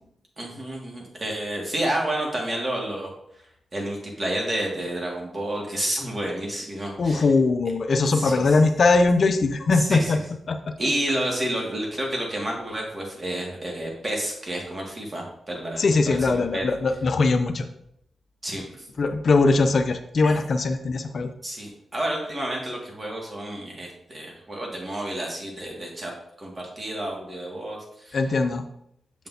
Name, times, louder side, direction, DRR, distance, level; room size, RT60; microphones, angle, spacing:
voice 1, 0.4-3.1 3.7-7.2 8.1-8.6 9.7-10.2 10.8-15.8 16.3-16.7 18.4-18.9 20.2-20.4 21.4-26.1 26.4-28.2, right 1 dB, 35° right, -1 dB, 2.0 m, -30 dB
voice 2, 7.0-10.2 10.5-10.6 15.8-17.7 19.0-21.3 28.1-28.6, left 3 dB, 55° left, 8 dB, 0.5 m, -21 dB
6.5 x 6.1 x 2.7 m, 0.76 s
cardioid pair, 80°, 0 cm